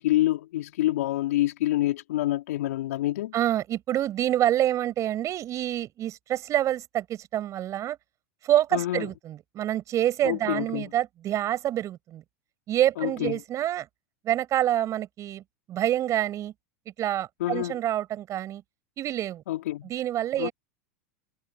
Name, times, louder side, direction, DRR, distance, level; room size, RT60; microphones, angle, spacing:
voice 1, 0.0-3.3 8.7-9.1 10.2-10.9 13.0-13.4 17.4-17.8 19.5-19.9 20.4-20.5, left 15 dB, 75° left, 4.5 m, -27 dB
voice 2, 3.3-8.0 8.4-12.2 12.7-13.9 14.2-15.4 15.7-16.5 16.8-18.6 19.0-19.4 19.8-20.5, right 12 dB, 40° right, 6.7 m, -27 dB
hypercardioid pair, 100°, 8 cm